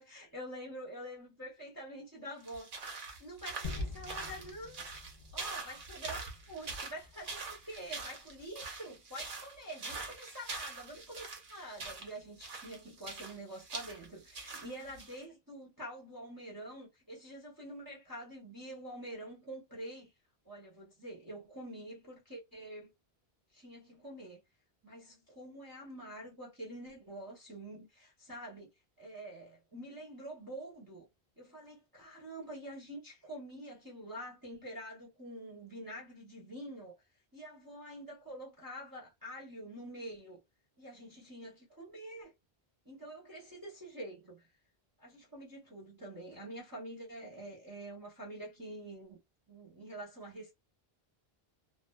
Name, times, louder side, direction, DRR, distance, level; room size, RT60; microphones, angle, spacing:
voice 1, 0.0-4.9 5.3-20.1 20.4-22.9 23.5-24.4 24.8-28.7 29.0-31.1 31.4-36.9 37.3-40.4 40.8-42.3 42.8-44.5 45.0-49.2 49.5-50.5, right 1 dB, 20° right, 0.8 m, -46 dB
sound 1, 2.4-15.2, right 4 dB, 55° right, 0.8 m, -44 dB
Gunshot gunfire / Fireworks / Boom, 3.6-8.4, left 2 dB, 40° left, 0.8 m, -45 dB
2.4 x 2.4 x 2.2 m
omnidirectional pair, 1.1 m